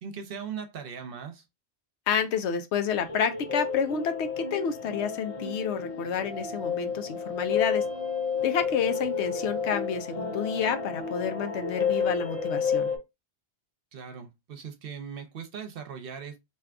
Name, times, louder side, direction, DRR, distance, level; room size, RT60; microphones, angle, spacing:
voice 1, 0.0-1.4 13.9-16.4, right 6 dB, 60° right, 0.8 m, -39 dB
voice 2, 2.1-7.8 8.4-12.9, left 7 dB, 90° left, 0.9 m, -29 dB
sound 1, 2.9-13.0, left 6 dB, 65° left, 1.4 m, -31 dB
2.7 x 2.4 x 3.3 m
omnidirectional pair, 1.1 m